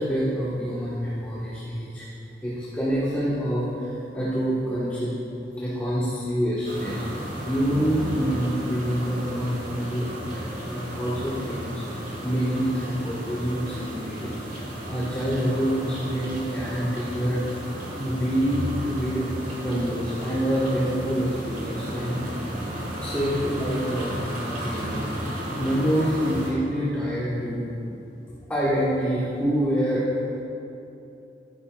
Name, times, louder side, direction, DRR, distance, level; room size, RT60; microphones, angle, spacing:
voice 1, 0.0-2.1 2.4-5.1 5.4-7.0 7.4-11.8 12.2-17.5 18.0-19.3 19.6-22.2 23.0-24.3 24.6-25.0 25.6-28.0 28.5-30.1, equal, 10° left, -8 dB, 1.1 m, -26 dB
sound 1, 6.6-26.5, right 1 dB, 50° right, 1.8 m, -33 dB
12.0 x 9.4 x 2.3 m, 2.8 s
head